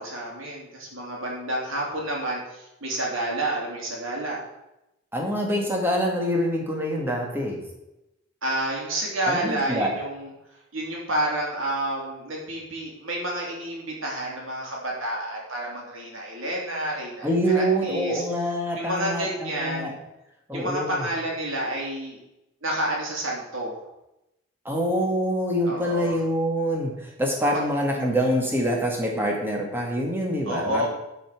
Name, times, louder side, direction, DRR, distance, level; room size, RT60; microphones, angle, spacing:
voice 1, 0.0-4.4 8.4-10.3 10.7-18.2 18.8-20.0 20.5-22.2 22.6-23.7 25.6-26.2 27.4-27.6 30.4-30.9, right 1 dB, 85° right, -3 dB, 3.3 m, -29 dB
voice 2, 5.1-7.6 9.3-9.9 17.2-19.9 20.5-21.1 24.7-30.9, equal, 10° right, -1 dB, 2.0 m, -25 dB
12.0 x 5.5 x 6.0 m, 0.91 s
head